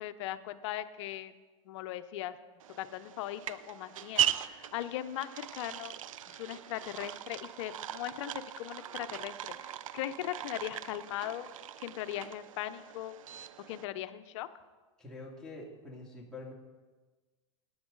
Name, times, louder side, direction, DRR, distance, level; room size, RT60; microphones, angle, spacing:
voice 1, 0.0-1.3 1.7-2.4 2.8-5.9 6.3-9.4 9.6-11.5 11.8-13.1 13.6-14.5, left 13 dB, 65° left, 12 dB, 0.7 m, -39 dB
sound 1, 2.6-13.8, right 10 dB, 85° right, 0.5 m, -39 dB
voice 2, 15.0-16.5, left 2 dB, 5° left, -4 dB, 2.4 m, -46 dB
17.0 x 9.6 x 3.9 m, 1.3 s
hypercardioid pair, 110°, 17 cm